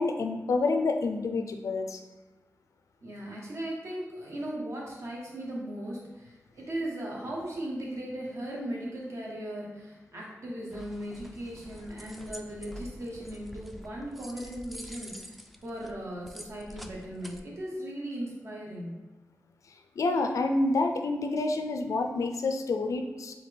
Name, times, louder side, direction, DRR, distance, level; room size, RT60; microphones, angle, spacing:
voice 1, 0.0-2.0 20.0-23.4, left 3 dB, 80° left, 6 dB, 0.4 m, -28 dB
voice 2, 3.0-18.9, right 1 dB, 60° right, -3 dB, 1.3 m, -38 dB
sound 1, 10.7-17.4, equal, ahead, 0.3 m, -46 dB
4.2 x 3.5 x 3.4 m, 1.1 s
wide cardioid pair, 105°, 5 cm